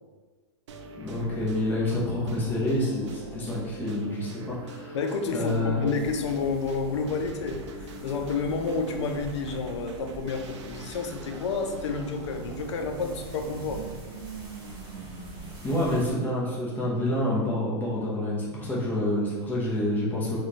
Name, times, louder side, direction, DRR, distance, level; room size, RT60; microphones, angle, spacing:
sound 1, 0.7-15.8, right 4 dB, 85° right, 0.5 m, -42 dB
voice 1, 1.0-5.0 5.3-5.8 15.6-20.4, left 1 dB, 10° left, -6 dB, 0.7 m, -28 dB
voice 2, 4.9-13.8, left 4 dB, 85° left, 5 dB, 0.5 m, -30 dB
sound 2, 5.9-16.1, left 1 dB, 25° right, 1.1 m, -45 dB
3.1 x 2.3 x 4.0 m, 1.4 s
supercardioid pair, 145°, 15 cm